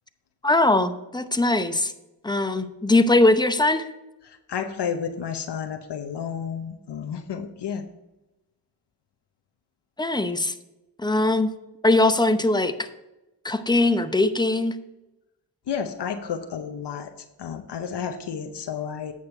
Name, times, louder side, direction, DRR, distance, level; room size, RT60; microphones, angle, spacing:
voice 1, 0.4-1.9 2.2-3.9 10.0-10.5 11.0-11.5 11.8-12.9 13.4-14.7, left 2 dB, 10° left, 10 dB, 0.7 m, -21 dB
voice 2, 4.2-7.8 15.7-17.1 17.4-19.1, left 7 dB, 65° left, 6 dB, 0.8 m, -31 dB
8.7 x 6.3 x 4.4 m, 0.99 s
cardioid pair, 50°, 43 cm